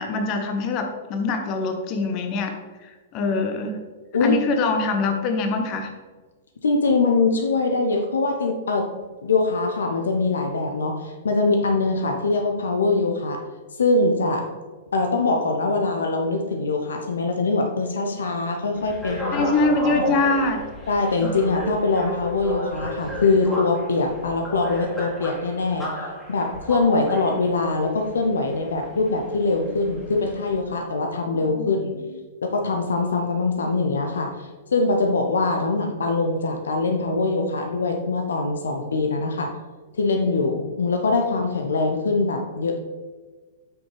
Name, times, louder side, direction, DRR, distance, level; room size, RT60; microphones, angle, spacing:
voice 1, 0.0-2.5 2.8-3.8 4.2-5.9 19.3-20.6 21.2-21.3 31.5-32.1, left 3 dB, 35° left, 5 dB, 1.0 m, -24 dB
voice 2, 6.6-8.9 9.2-13.4 13.8-14.5 14.9-20.2 20.9-25.9 26.3-31.9 32.4-39.5 40.0-42.8, left 3 dB, 65° left, 4 dB, 0.8 m, -23 dB
sound 1, 18.7-30.6, right 1 dB, 5° left, 2.2 m, -33 dB
8.3 x 6.2 x 3.3 m, 1.3 s
figure-of-eight pair, 105°, 0 cm